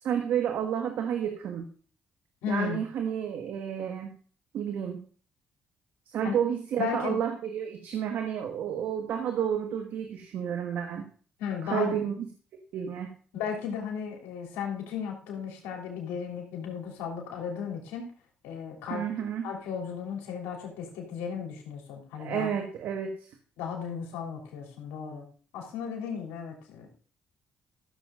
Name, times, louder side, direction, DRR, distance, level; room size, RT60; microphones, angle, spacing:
voice 1, 0.0-1.7 2.5-4.1 4.5-5.0 6.1-11.1 11.6-12.1 12.7-13.1 18.9-19.5 22.1-23.3, right 8 dB, 75° right, 5 dB, 1.4 m, -31 dB
voice 2, 2.4-2.8 6.2-6.4 6.8-7.2 11.4-11.9 13.3-18.1 18.4-19.1 19.4-22.5 23.6-25.3 25.5-26.9, left 7 dB, 90° left, 1 dB, 3.2 m, -35 dB
14.0 x 7.3 x 3.7 m, 0.43 s
supercardioid pair, 65°, 4 cm